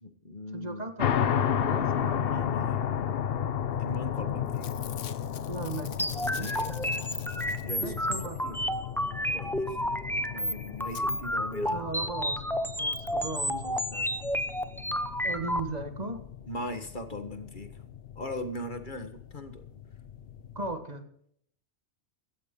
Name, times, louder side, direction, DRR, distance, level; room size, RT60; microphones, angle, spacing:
voice 1, 0.0-0.8 2.3-2.8 3.8-4.7 6.4-6.7 7.6-7.9 8.4-8.7 9.3-9.8 10.3-11.8 16.5-17.7 18.2-19.6, left 1 dB, 45° left, 8 dB, 1.8 m, -39 dB
voice 2, 0.5-2.2 5.5-6.6 7.8-8.4 11.7-14.1 15.2-16.2 20.6-21.0, right 2 dB, 35° right, 7 dB, 1.9 m, -37 dB
sound 1, 1.0-20.7, left 9 dB, 60° left, 0.9 m, -34 dB
Packing tape duct tape / Tearing, 3.9-4.2 4.5-8.1 10.0-10.1 10.2-10.3 10.9-11.0 11.7-11.8 12.0-12.1, left 10 dB, 85° left, 1.1 m, -46 dB
sound 2, 6.0-15.6, equal, ahead, 0.7 m, -31 dB
16.5 x 14.0 x 3.8 m, 0.65 s
omnidirectional pair, 1.2 m